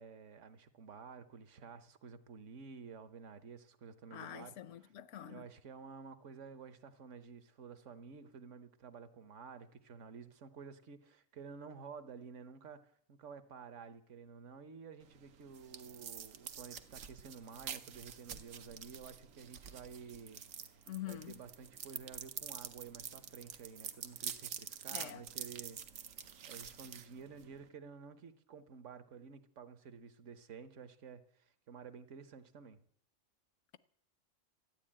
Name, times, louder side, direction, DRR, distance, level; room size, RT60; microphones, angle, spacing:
voice 1, 0.0-4.5 4.8-4.9 5.3-20.4 21.1-25.8 26.4-32.8, right 6 dB, 70° right, 1.4 m, -52 dB
voice 2, 4.1-5.5 20.9-21.4 24.9-25.2, left 12 dB, 75° left, 1.1 m, -46 dB
sound 1, 15.0-27.7, right 8 dB, 90° right, 1.3 m, -47 dB
13.5 x 9.8 x 8.7 m
omnidirectional pair, 1.3 m